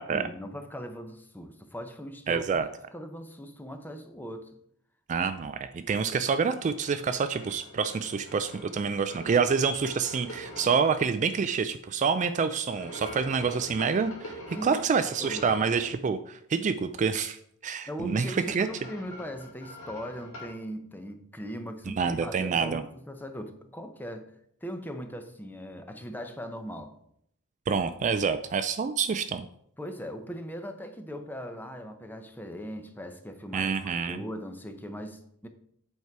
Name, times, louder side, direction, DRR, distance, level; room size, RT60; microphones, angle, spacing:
voice 1, 0.0-2.6 2.9-4.5 14.5-14.8 15.2-15.6 17.9-24.3 24.6-26.9 29.8-33.7 34.1-35.5, equal, 10° left, 7 dB, 0.6 m, -39 dB
voice 2, 2.3-2.7 5.1-17.4 17.6-18.7 22.0-22.8 27.7-29.4 33.5-34.2, right 5 dB, 35° right, 10 dB, 0.3 m, -27 dB
sound 1, 6.5-11.0 12.6-15.9 18.0-20.6, equal, 65° left, 2.0 m, -44 dB
8.1 x 4.6 x 4.7 m, 0.70 s
head